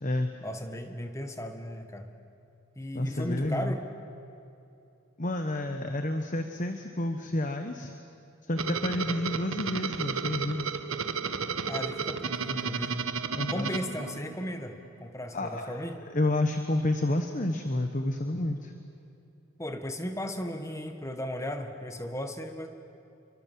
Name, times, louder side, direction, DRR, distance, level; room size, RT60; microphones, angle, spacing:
voice 1, 0.4-2.1 2.8-3.8 9.1-9.2 11.7-13.1 13.5-16.0 19.6-22.7, equal, 15° left, 6 dB, 1.7 m, -36 dB
voice 2, 2.9-3.7 5.2-7.9 8.4-10.8 13.3-13.7 15.3-15.8 16.1-18.7, left 1 dB, 35° left, 6 dB, 1.2 m, -30 dB
sound 1, 8.6-14.6, right 5 dB, 70° right, 1.2 m, -33 dB
29.5 x 24.0 x 7.6 m, 2.8 s
head